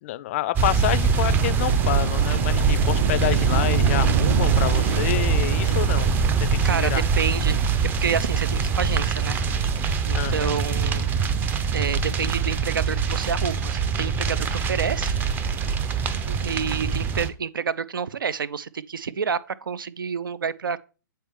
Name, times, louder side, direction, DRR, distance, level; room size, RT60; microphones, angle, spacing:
voice 1, 0.0-6.1 6.4-7.0 10.1-10.6, left 15 dB, 40° left, 0.4 m, -28 dB
sound 1, 0.6-17.3, right 5 dB, 15° right, 0.5 m, -23 dB
sound 2, 1.0-8.7 9.0-9.1, right 5 dB, 60° right, 0.8 m, -27 dB
voice 2, 6.6-7.7 8.0-9.4 10.1-11.1 11.7-15.1 16.3-20.8, right 6 dB, 80° right, 0.5 m, -28 dB
8.6 x 4.3 x 3.6 m
hypercardioid pair, 130°, 11 cm